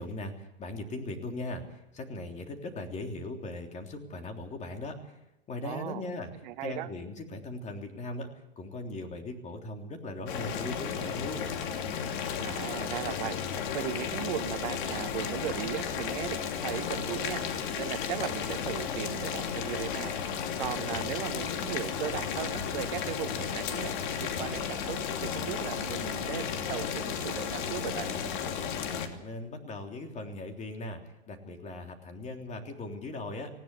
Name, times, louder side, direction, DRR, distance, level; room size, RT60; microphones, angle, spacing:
voice 1, 0.0-5.2 5.5-6.3 6.6-11.5 29.1-33.5, left 2 dB, 20° left, 4 dB, 3.4 m, -39 dB
voice 2, 5.6-6.0 6.4-6.9 12.4-13.4 13.7-17.4 17.8-23.9 24.2-28.1, right 13 dB, 50° right, 11 dB, 1.2 m, -37 dB
Boiling, 10.3-29.1, left 7 dB, 50° left, 2.9 m, -33 dB
19.0 x 17.0 x 8.4 m, 0.89 s
hypercardioid pair, 115°, 32 cm